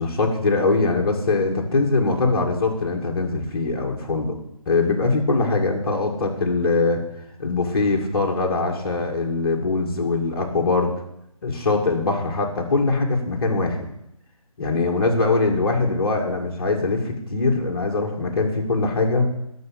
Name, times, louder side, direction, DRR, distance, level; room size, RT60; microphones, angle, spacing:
voice 1, 0.0-4.4 4.7-7.0 7.4-10.9 11.4-13.8 14.6-19.3, left 3 dB, 40° left, 0 dB, 2.2 m, -22 dB
10.5 x 6.5 x 8.7 m, 0.81 s
figure-of-eight pair, 160°, 19 cm